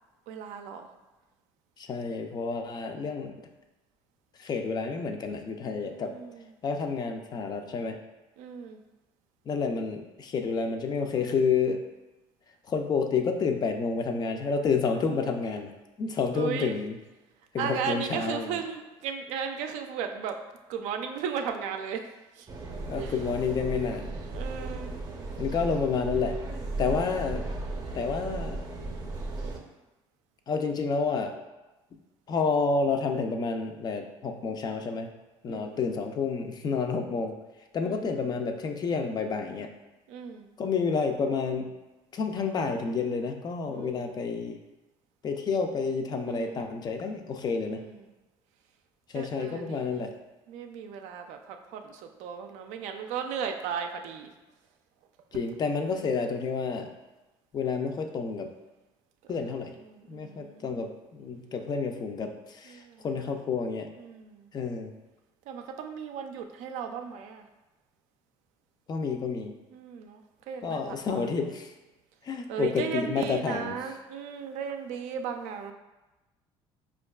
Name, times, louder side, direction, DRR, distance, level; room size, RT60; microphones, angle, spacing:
voice 1, 0.3-0.9 5.8-6.5 8.4-8.8 14.9-15.3 16.3-16.8 17.6-20.4 20.7-22.1 22.3-22.5 23.0-23.2 24.3-24.9 35.5-35.8 37.8-38.3 40.1-40.5 43.7-44.2 46.3-46.8 47.7-48.1 49.1-50.0 50.5-54.3 59.2-59.3 59.8-60.8 62.7-63.1 64.0-64.5 65.5-67.5 69.7-70.2 70.5-71.3 72.5-75.7, right 7 dB, 75° right, 6 dB, 0.4 m, -36 dB
voice 2, 1.8-3.3 4.4-6.1 6.6-8.0 9.5-11.8 12.7-15.7 16.0-17.0 17.5-18.6 22.9-24.1 25.4-26.3 26.8-27.5 27.9-28.6 30.5-31.3 32.3-35.1 35.4-37.3 37.7-39.7 40.6-41.7 42.1-44.6 45.2-47.8 49.1-50.1 55.3-56.9 57.5-58.5 59.3-59.7 60.1-63.9 64.5-64.9 68.9-69.5 70.6-71.7 72.2-73.8, left 5 dB, 35° left, 5 dB, 0.4 m, -29 dB
sound 1, 22.5-29.6, right 2 dB, 30° right, 0.6 m, -35 dB
4.5 x 2.3 x 2.2 m, 1.1 s
supercardioid pair, 95°, 12 cm